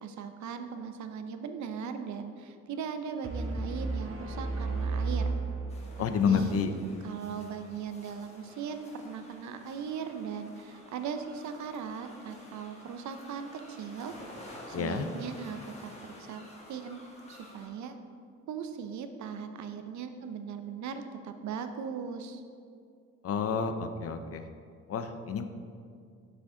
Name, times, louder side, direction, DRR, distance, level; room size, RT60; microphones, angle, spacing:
voice 1, 0.0-5.3 6.0-6.6 7.0-15.9 16.2-17.0 17.3-18.0 18.5-22.4, right 6 dB, 70° right, 8 dB, 0.7 m, -39 dB
sound 1, 3.2-6.3, right 3 dB, 45° right, 1.3 m, -33 dB
sound 2, 5.7-17.7, left 1 dB, 20° left, 1.5 m, -51 dB
voice 2, 6.0-6.7 14.7-15.0 23.2-24.4 24.9-25.4, left 6 dB, 50° left, 8 dB, 0.6 m, -29 dB
7.8 x 6.1 x 3.8 m, 2.3 s
cardioid pair, 90°, 30 cm